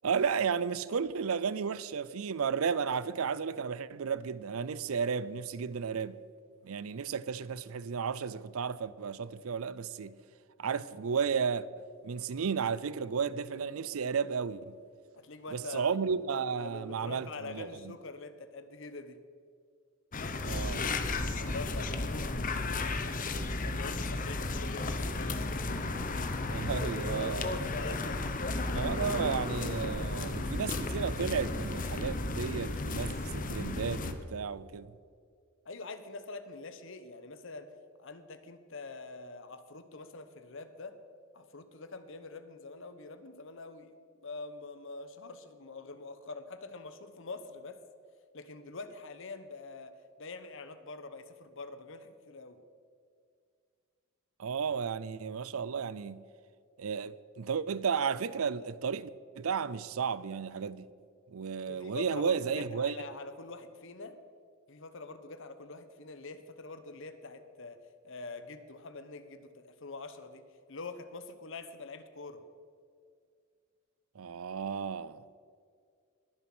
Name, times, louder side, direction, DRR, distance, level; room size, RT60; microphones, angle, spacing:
voice 1, 0.0-6.2 6.6-10.2 10.6-11.7 12.0-14.8 15.5-17.9 20.4-20.9 26.5-27.6 28.7-35.0 54.4-56.2 56.8-59.1 59.3-60.9 61.3-63.0 74.2-75.4, right 6 dB, 90° right, 0.5 m, -33 dB
voice 2, 15.1-16.2 16.6-19.2 21.4-23.3 23.6-25.7 27.6-28.2 35.6-37.7 38.0-40.9 41.3-47.8 48.3-49.9 50.2-52.6 61.7-64.2 64.7-67.8 68.0-70.4 70.7-72.4, left 3 dB, 65° left, 1.0 m, -45 dB
sound 1, 20.1-34.1, left 2 dB, 40° left, 0.9 m, -34 dB
20.5 x 7.2 x 6.1 m
head